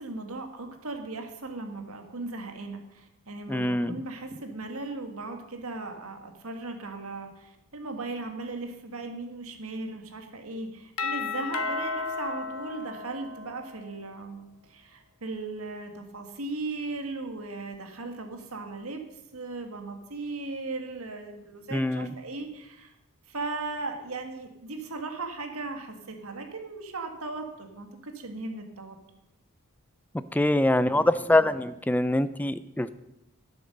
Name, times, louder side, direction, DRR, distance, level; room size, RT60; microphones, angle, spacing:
voice 1, 0.0-19.1 19.3-22.9 23.3-29.0, right 3 dB, 75° right, 5 dB, 1.8 m, -37 dB
voice 2, 3.5-4.0 21.7-22.1 30.3-32.9, left 1 dB, 5° left, 14 dB, 0.3 m, -24 dB
Doorbell, 11.0-13.8, left 4 dB, 80° left, 1.1 m, -33 dB
11.5 x 8.4 x 6.6 m, 0.89 s
head